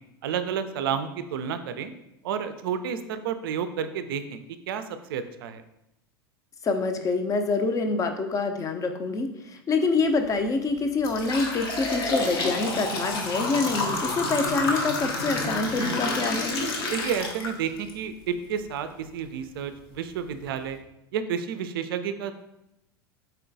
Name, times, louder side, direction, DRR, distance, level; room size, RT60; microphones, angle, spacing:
voice 1, 0.2-1.9 2.2-4.4 4.7-4.8 5.1-5.6 16.9-20.8 21.1-22.3, right 7 dB, 65° right, 10 dB, 0.4 m, -30 dB
voice 2, 6.6-16.6, left 3 dB, 25° left, 6 dB, 0.5 m, -26 dB
sound 1, 10.1-10.3 10.8-17.9 18.4-18.5 19.3-19.4 19.9-20.0 20.5-20.7, left 2 dB, 70° left, 0.8 m, -29 dB
4.3 x 3.7 x 2.6 m, 0.87 s
figure-of-eight pair, 85°, 13 cm